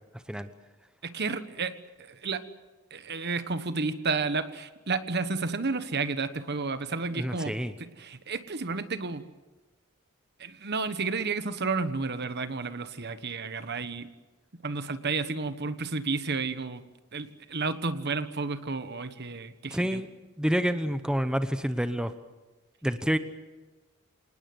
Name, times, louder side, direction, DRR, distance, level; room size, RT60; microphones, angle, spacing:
voice 1, 1.0-2.4 2.9-7.5 7.8-9.2 10.4-14.1 14.5-16.8 17.1-20.0, right 4 dB, 50° right, 11 dB, 1.3 m, -31 dB
voice 2, 7.1-7.7 19.7-20.1 20.4-22.1 22.8-23.2, equal, 5° right, 10 dB, 0.9 m, -28 dB
27.0 x 19.5 x 8.0 m, 1.2 s
head